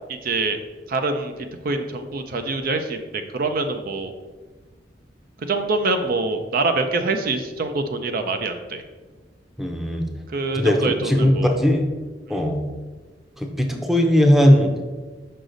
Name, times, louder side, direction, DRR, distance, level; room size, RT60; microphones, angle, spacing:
voice 1, 0.1-0.6 0.9-4.1 5.5-8.8 10.3-11.6 12.3-12.4, right 3 dB, 55° right, 7 dB, 0.5 m, -25 dB
voice 2, 9.6-10.1 10.5-11.8 12.3-12.6 13.4-14.7, equal, ahead, 3 dB, 0.6 m, -18 dB
6.6 x 5.0 x 3.9 m, 1.3 s
head